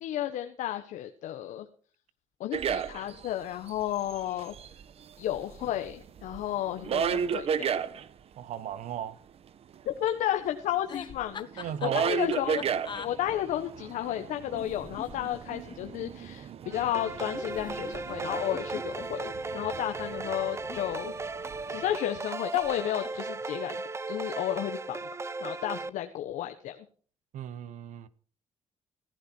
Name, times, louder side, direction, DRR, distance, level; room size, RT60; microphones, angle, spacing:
voice 1, 0.0-1.7 2.4-4.5 5.2-7.7 10.0-12.6 13.0-21.1 21.7-25.1 25.4-26.8, left 12 dB, 85° left, 1.3 m, -32 dB
sound 1, 2.5-3.3 3.7-4.8 5.3-8.1 10.1-10.2 10.3-22.0, right 7 dB, 55° right, 1.0 m, -34 dB
voice 2, 8.4-9.2 11.6-12.1 27.3-28.1, right 10 dB, 75° right, 1.2 m, -36 dB
sound 2, 10.8-13.1 14.5-16.1 17.3-19.7 20.5-21.5 22.5-22.8 23.0-23.4, left 7 dB, 40° left, 1.1 m, -44 dB
sound 3, 16.7-25.9, right 3 dB, 20° right, 0.7 m, -36 dB
15.0 x 15.0 x 4.5 m
cardioid pair, 120°, 13 cm